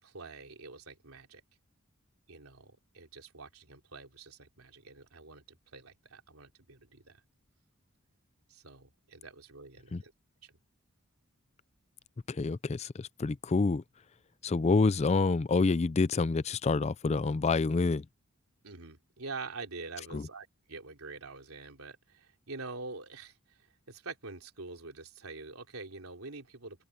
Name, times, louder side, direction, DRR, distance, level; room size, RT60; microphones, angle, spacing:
voice 1, 0.0-1.4 2.3-7.2 8.5-10.1 10.4-10.5 18.6-26.8, right 3 dB, 85° right, 3.4 m, -46 dB
voice 2, 12.3-13.8 14.4-18.0 20.1-20.3, left 3 dB, 30° left, 0.4 m, -27 dB
head